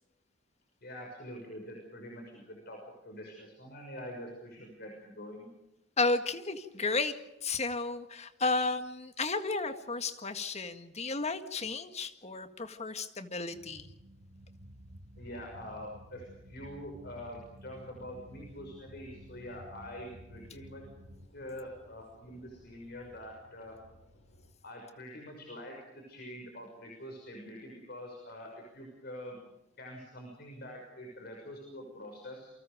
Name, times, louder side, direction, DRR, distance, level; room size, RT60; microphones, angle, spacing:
voice 1, 0.8-2.8 3.0-5.5 15.2-20.8 21.3-23.8 24.6-29.4 29.8-32.5, equal, 55° left, 1 dB, 6.1 m, -45 dB
voice 2, 6.0-13.9, left 3 dB, 35° left, 9 dB, 1.8 m, -33 dB
sound 1, 13.5-21.3, equal, 60° right, 1.7 m, -52 dB
sound 2, 18.7-24.5, equal, 70° left, 5.7 m, -61 dB
29.0 x 24.0 x 5.1 m, 0.95 s
head